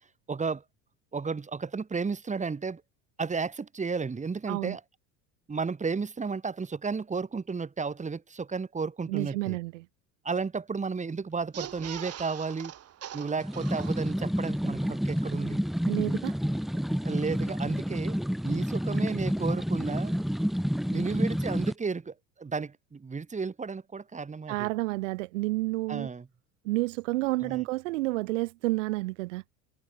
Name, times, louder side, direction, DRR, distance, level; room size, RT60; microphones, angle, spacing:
voice 1, 0.3-0.6 1.1-2.8 3.2-4.8 5.5-9.6 10.2-12.7 13.1-15.6 16.7-18.2 18.4-20.1 20.9-24.7 25.9-26.3 27.4-27.6, right 5 dB, 20° right, 5.2 m, -33 dB
voice 2, 9.1-9.8 15.9-16.3 24.5-26.1 26.6-29.4, right 21 dB, 85° right, 1.8 m, -30 dB
sound 1, 11.4-14.4 14.8-14.9 15.1-15.2, right 11 dB, 40° right, 3.7 m, -42 dB
sound 2, 13.4-21.7, equal, ahead, 2.4 m, -29 dB
supercardioid pair, 105°, 36 cm